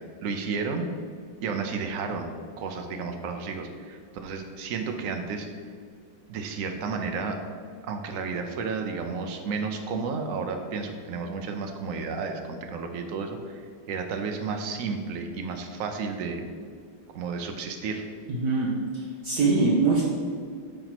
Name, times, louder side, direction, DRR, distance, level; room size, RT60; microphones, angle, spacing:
voice 1, 0.2-0.8 1.4-5.5 6.3-7.4 7.8-16.4 17.1-18.0, right 4 dB, 85° right, 4 dB, 0.7 m, -32 dB
voice 2, 18.3-20.0, right 3 dB, 60° right, -4 dB, 1.2 m, -23 dB
8.8 x 3.0 x 5.9 m, 2.1 s
omnidirectional pair, 2.1 m